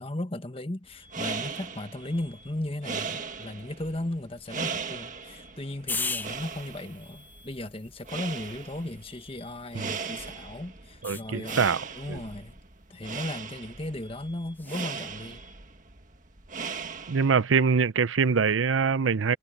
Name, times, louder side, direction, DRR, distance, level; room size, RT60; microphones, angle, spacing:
voice 1, 0.0-11.7 11.9-12.6 12.9-15.4, left 1 dB, 30° left, 1.4 m, -36 dB
sound 1, 0.9-17.5, right 5 dB, 40° right, 1.8 m, -39 dB
sound 2, 1.0-1.7 2.0-2.7 3.0-3.7 5.0-5.7 6.0-6.7 7.0-7.7 9.0-9.7 10.0-10.7 11.0-11.7 13.0-13.7 14.0-14.7 15.0-15.7, left 1 dB, 10° right, 4.0 m, -56 dB
sound 3, 5.9-10.3 11.0-11.8 14.5-14.9, left 4 dB, 10° left, 0.5 m, -39 dB
voice 2, 11.0-12.2 17.1-19.4, right 5 dB, 85° right, 0.6 m, -24 dB
head